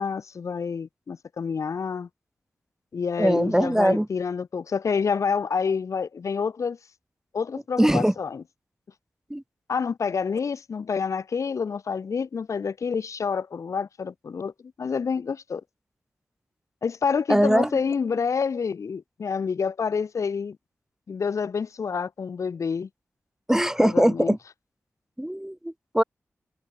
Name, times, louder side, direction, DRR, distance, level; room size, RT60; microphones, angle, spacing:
voice 1, 0.0-2.1 2.9-6.8 7.3-8.4 9.7-14.5 14.8-15.6 16.8-20.6 21.1-22.9 23.8-24.4, left 5 dB, 75° left, 4.2 m, -28 dB
voice 2, 3.2-4.1 7.8-8.1 9.3-9.4 17.3-17.7 23.5-24.4 25.2-26.0, right 1 dB, 10° right, 1.7 m, -21 dB
cardioid pair, 50°, 5 cm